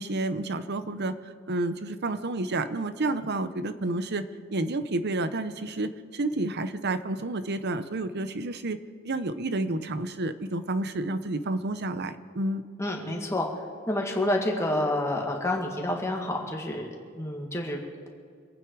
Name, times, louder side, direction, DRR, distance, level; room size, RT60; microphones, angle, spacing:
voice 1, 0.0-4.2 4.5-8.8 9.0-12.6, right 2 dB, 55° right, 11 dB, 0.8 m, -30 dB
voice 2, 12.8-18.1, left 1 dB, 15° left, 0 dB, 2.1 m, -29 dB
25.5 x 9.3 x 4.8 m, 2.3 s
head